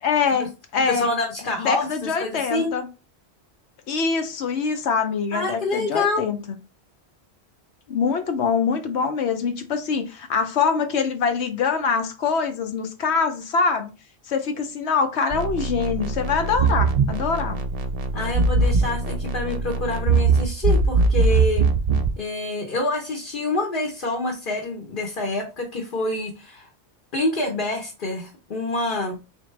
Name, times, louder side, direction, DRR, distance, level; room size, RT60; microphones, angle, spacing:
voice 1, 0.0-1.1 1.6-2.9 3.9-6.4 7.9-13.9 14.3-17.6, left 5 dB, 80° left, 1.1 m, -24 dB
voice 2, 0.9-2.7 5.3-6.3 18.1-21.6 22.2-26.7 27.1-29.2, left 2 dB, 55° left, 1.0 m, -27 dB
sound 1, 15.3-22.1, right 3 dB, 55° right, 0.4 m, -21 dB
3.8 x 3.4 x 3.2 m
omnidirectional pair, 1.1 m